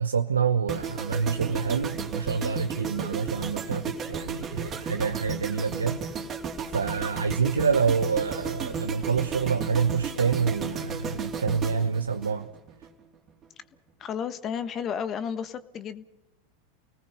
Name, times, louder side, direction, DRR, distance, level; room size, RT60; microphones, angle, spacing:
voice 1, 0.0-6.0 6.7-12.5, right 6 dB, 90° right, 6 dB, 0.9 m, -27 dB
sound 1, 0.7-12.9 13.1-13.4, right 5 dB, 30° right, 3.2 m, -34 dB
voice 2, 14.0-16.0, left 7 dB, 35° left, 13 dB, 1.4 m, -32 dB
29.5 x 19.0 x 5.6 m, 0.98 s
hypercardioid pair, 95°, 0 cm